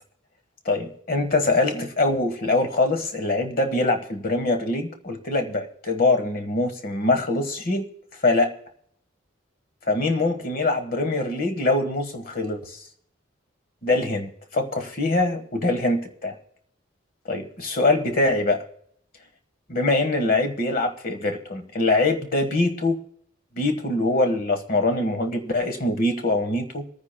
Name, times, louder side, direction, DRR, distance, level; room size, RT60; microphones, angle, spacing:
voice 1, 0.6-7.8 8.2-8.5 9.9-12.8 13.8-16.4 17.3-18.6 19.7-23.0 23.5-26.8, left 2 dB, 45° left, 1.3 m, -23 dB
28.0 x 9.5 x 2.2 m
head